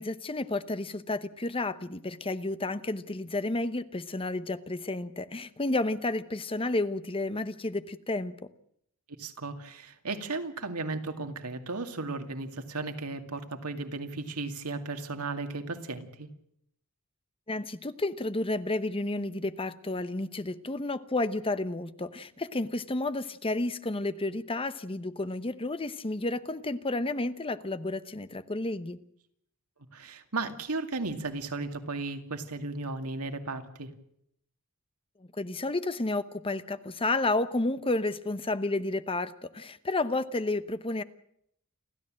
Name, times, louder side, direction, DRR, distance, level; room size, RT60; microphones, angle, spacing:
voice 1, 0.0-8.3 17.5-29.0 35.4-41.0, left 2 dB, 25° left, 13 dB, 0.9 m, -31 dB
voice 2, 9.2-16.3 29.9-33.9, right 3 dB, 85° right, 6 dB, 2.3 m, -35 dB
29.5 x 12.5 x 7.6 m, 0.71 s
head